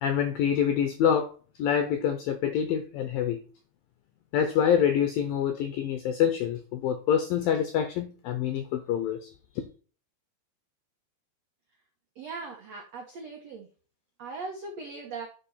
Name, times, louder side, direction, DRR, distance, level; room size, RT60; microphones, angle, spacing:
voice 1, 0.0-1.3 1.6-3.4 4.3-9.3, left 8 dB, 80° left, 2.0 m, -26 dB
voice 2, 12.1-13.7 14.2-15.3, right 4 dB, 85° right, 1.4 m, -39 dB
10.5 x 5.4 x 4.2 m
omnidirectional pair, 5.0 m